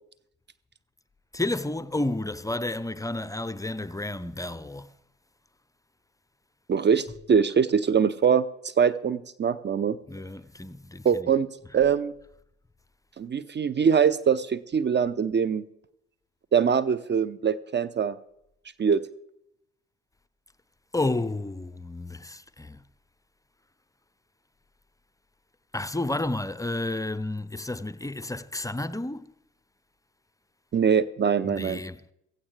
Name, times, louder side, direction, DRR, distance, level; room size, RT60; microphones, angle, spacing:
voice 1, 1.3-4.9 10.1-11.3 20.9-22.8 25.7-29.3 31.4-32.0, left 2 dB, 10° left, 0.6 m, -31 dB
voice 2, 6.7-10.0 11.0-11.5 11.7-12.1 13.2-15.6 16.5-18.2 18.8-19.0 30.7-31.8, right 7 dB, 30° right, 0.7 m, -23 dB
16.0 x 15.5 x 3.3 m
hypercardioid pair, 50°, 35 cm